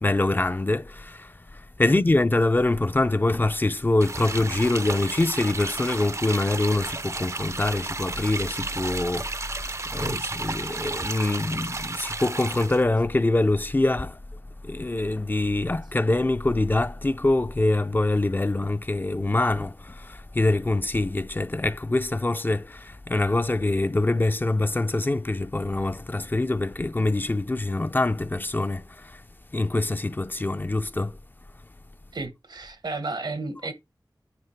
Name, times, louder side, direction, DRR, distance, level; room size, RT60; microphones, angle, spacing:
voice 1, 0.0-14.2 14.6-29.2 29.5-31.2, left 2 dB, 25° left, 0.4 m, -25 dB
sound 1, 4.0-12.8, right 3 dB, 40° right, 0.4 m, -33 dB
voice 2, 32.1-33.7, right 3 dB, 90° right, 1.3 m, -33 dB
9.4 x 3.2 x 4.5 m
wide cardioid pair, 65°, 8 cm